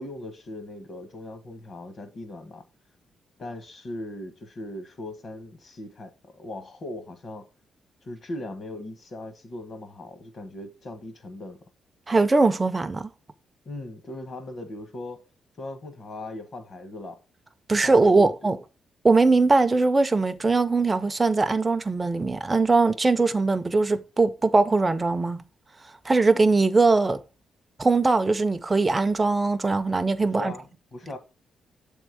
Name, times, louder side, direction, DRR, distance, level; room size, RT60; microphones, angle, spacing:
voice 1, 0.0-2.6 3.4-7.5 8.0-11.6 13.6-15.2 15.6-17.2 17.8-18.5 30.4-31.2, left 1 dB, 45° left, 1.1 m, -39 dB
voice 2, 12.1-13.1 17.7-18.6 19.0-25.4 26.0-27.2 27.8-30.5, right 3 dB, 20° right, 0.5 m, -21 dB
7.3 x 3.6 x 4.6 m
cardioid pair, 130°, 0 cm